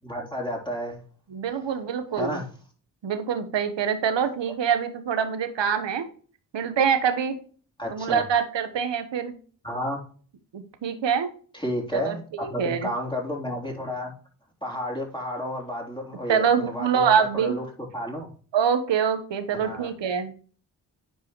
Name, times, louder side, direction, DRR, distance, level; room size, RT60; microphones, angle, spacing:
voice 1, 0.0-1.0 2.2-2.5 7.8-8.2 9.6-10.0 11.5-14.1 14.6-18.3 19.5-19.9, left 1 dB, 10° left, -1 dB, 3.7 m, -31 dB
voice 2, 1.3-2.4 3.0-6.0 6.5-7.4 7.9-9.4 10.5-11.3 11.9-12.9 16.3-17.6 18.5-20.3, right 7 dB, 70° right, 10 dB, 1.2 m, -25 dB
10.0 x 4.6 x 3.1 m, 0.43 s
supercardioid pair, 40°, 46 cm